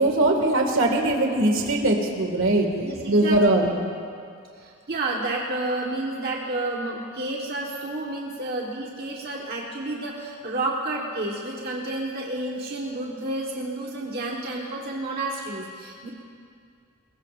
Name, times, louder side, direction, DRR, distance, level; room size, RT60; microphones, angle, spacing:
voice 1, 0.0-2.7 3.1-3.7, right 1 dB, 65° right, 1 dB, 2.0 m, -21 dB
voice 2, 2.7-3.7 4.6-16.1, right 2 dB, 50° right, -2 dB, 1.3 m, -30 dB
21.5 x 21.0 x 2.5 m, 2.3 s
head